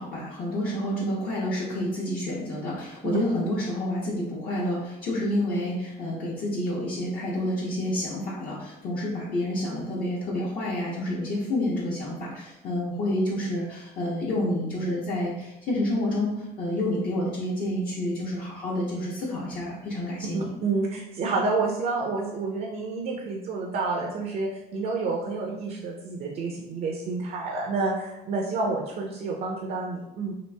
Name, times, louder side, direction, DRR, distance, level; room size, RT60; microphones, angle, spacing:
voice 1, 0.0-20.5, left 1 dB, 55° left, -7 dB, 0.9 m, -29 dB
voice 2, 20.3-30.3, right 3 dB, 60° right, -1 dB, 0.6 m, -29 dB
3.0 x 2.5 x 3.3 m, 0.94 s
cardioid pair, 110°, 17 cm